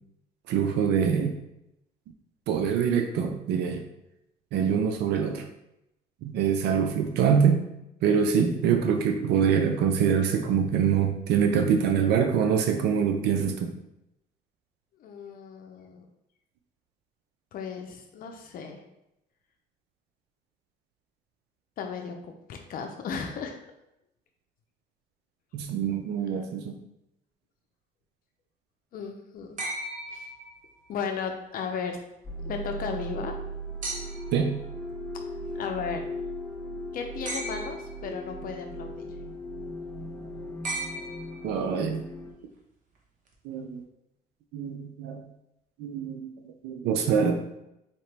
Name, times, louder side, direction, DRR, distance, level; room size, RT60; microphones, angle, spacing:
voice 1, 0.5-1.4 2.5-3.8 4.5-5.4 6.2-7.6 8.0-13.7 25.5-26.7 34.3-34.6 41.4-42.0 43.4-43.8 44.5-45.2 45.8-46.3 46.6-47.4, right 7 dB, 80° right, 4 dB, 0.5 m, -24 dB
voice 2, 15.0-16.0 17.5-18.8 21.8-23.6 28.9-29.6 30.1-30.3 30.9-32.0 32.4-33.3 35.6-36.0 36.9-39.1, left 6 dB, 60° left, 4 dB, 0.5 m, -35 dB
sound 1, 29.6-31.0 33.8-34.4 37.2-38.0 40.6-41.7 43.3-43.4, right 2 dB, 50° right, 1.0 m, -36 dB
sound 2, 32.2-42.3, equal, 15° left, 0.7 m, -37 dB
4.3 x 2.8 x 3.3 m, 0.86 s
cardioid pair, 110°, 17 cm